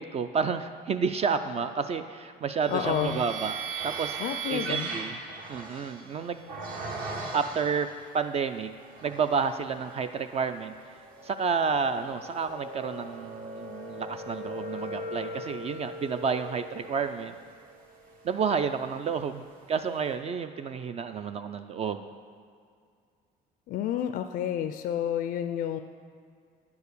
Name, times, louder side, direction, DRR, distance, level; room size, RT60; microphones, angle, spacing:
voice 1, 0.0-3.6 3.8-4.2 4.5-5.2 5.5-7.0 7.3-7.9 8.1-8.7 9.0-17.4 18.2-22.1, right 6 dB, 40° right, 9 dB, 0.4 m, -30 dB
sound 1, 2.6-8.1 8.7-9.5 9.9-19.1, right 3 dB, 60° right, 1.3 m, -39 dB
voice 2, 2.7-3.2 4.2-4.9 23.7-25.8, left 10 dB, 60° left, 8 dB, 0.4 m, -30 dB
9.5 x 4.7 x 6.7 m, 2.2 s
cardioid pair, 110°, 17 cm